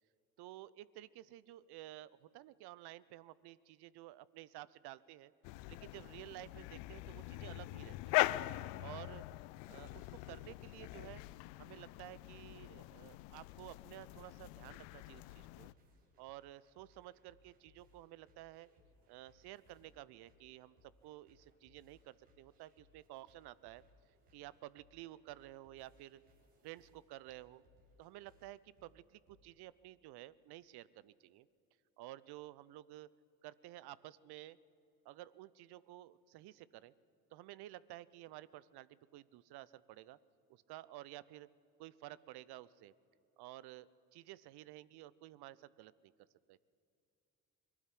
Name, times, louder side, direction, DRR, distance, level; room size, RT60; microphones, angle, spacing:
voice 1, 0.4-5.3 5.7-8.3 8.8-9.2 9.7-11.2 11.6-15.7 16.2-18.7 19.1-20.7 21.0-23.8 24.3-26.2 26.6-27.6 28.0-31.5 32.0-33.1 33.4-34.6 35.0-36.9 37.3-40.2 40.5-41.5 41.8-42.9 43.4-46.1 46.5-46.6, right 15 dB, 60° right, 19 dB, 0.7 m, -53 dB
sound 1, 5.4-15.7, left 19 dB, 70° left, 0.6 m, -41 dB
sound 2, 15.4-29.4, left 2 dB, 80° right, 3.8 m, -70 dB
21.5 x 12.5 x 9.9 m, 2.6 s
hypercardioid pair, 60°, 45 cm